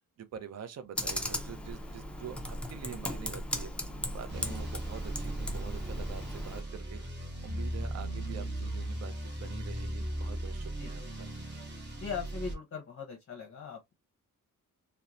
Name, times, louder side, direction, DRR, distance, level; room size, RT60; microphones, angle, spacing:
voice 1, 0.2-3.7 4.1-7.0 7.4-11.3, right 8 dB, 50° right, 0.5 m, -45 dB
Computer keyboard, 1.0-6.6, left 1 dB, 5° left, 0.4 m, -37 dB
sound 1, 4.3-12.5, right 1 dB, 30° right, 0.9 m, -37 dB
voice 2, 12.0-13.9, left 6 dB, 40° left, 0.6 m, -40 dB
2.9 x 2.1 x 2.4 m
wide cardioid pair, 170°, 34 cm